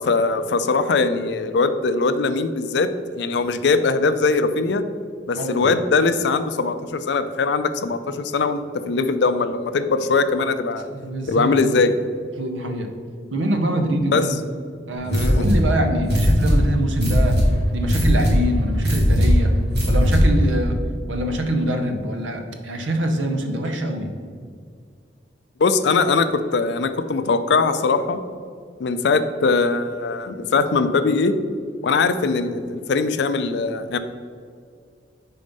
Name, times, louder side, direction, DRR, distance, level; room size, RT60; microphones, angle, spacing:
voice 1, 0.0-2.9 3.1-4.8 5.3-10.9 11.3-11.9 14.1-14.2 15.1-15.5 25.6-28.2 28.8-31.3 31.8-34.0, left 4 dB, 65° left, 10 dB, 0.4 m, -21 dB
voice 2, 5.3-5.7 10.9-11.8 12.4-12.9 13.3-14.4 14.9-17.3 17.7-19.5 19.9-20.8 21.1-24.1, right 1 dB, 90° right, 4 dB, 0.8 m, -24 dB
sound 1, 15.0-20.5, equal, 55° right, 1.3 m, -19 dB
5.2 x 4.2 x 5.2 m, 2.1 s
head